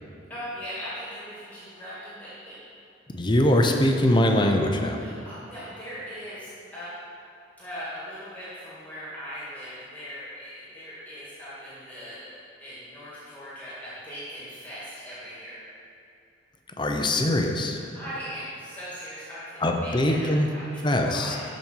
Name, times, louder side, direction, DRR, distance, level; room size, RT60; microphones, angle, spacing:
voice 1, 0.3-2.6 4.9-6.9 7.6-15.6 17.7-21.4, equal, 10° left, -10 dB, 2.3 m, -39 dB
voice 2, 3.1-5.0 16.8-17.8 19.6-20.5 20.8-21.4, left 1 dB, 25° left, 3 dB, 0.7 m, -22 dB
13.0 x 5.3 x 4.7 m, 2.8 s
head